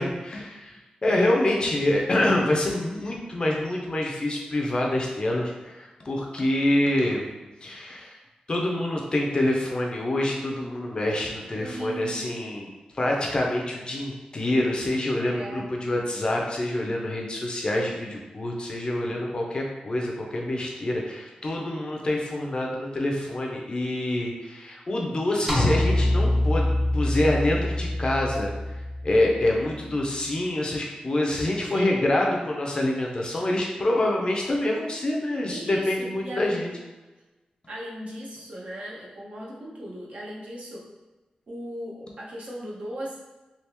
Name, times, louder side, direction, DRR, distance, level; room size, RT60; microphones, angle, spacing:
voice 1, 0.0-7.3 7.6-8.2 8.5-12.7 12.9-36.7, left 1 dB, 35° left, -1 dB, 0.5 m, -26 dB
voice 2, 11.5-12.2 15.2-15.7 31.7-32.4 35.5-36.7 37.7-40.9 41.5-43.2, right 1 dB, 60° right, -4 dB, 0.8 m, -37 dB
sound 1, 25.5-29.9, left 1 dB, 15° right, 0.6 m, -26 dB
3.4 x 2.4 x 2.9 m, 1.1 s
wide cardioid pair, 145°, 3 cm